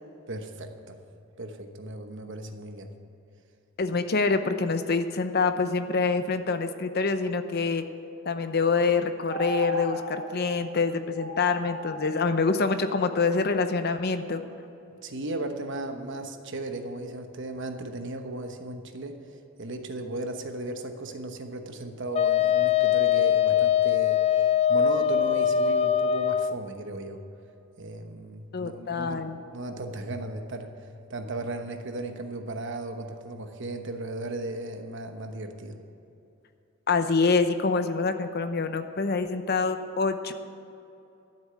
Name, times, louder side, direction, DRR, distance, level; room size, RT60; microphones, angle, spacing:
voice 1, 0.3-1.0 1.4-2.9 15.0-19.2 19.6-24.2 24.7-27.2 27.8-29.2 29.5-30.7 31.1-35.8, right 2 dB, 60° right, 6 dB, 1.1 m, -36 dB
voice 2, 3.8-7.8 8.3-14.4 28.5-29.4 36.9-40.3, left 4 dB, 50° left, 9 dB, 0.7 m, -26 dB
sound 1, 9.3-10.1 10.5-10.6 11.2-12.1, right 2 dB, ahead, 3.1 m, -35 dB
Wind instrument woodwind instrument, 22.1-26.5, left 9 dB, 30° left, 0.3 m, -22 dB
13.0 x 7.4 x 9.1 m, 2.8 s
head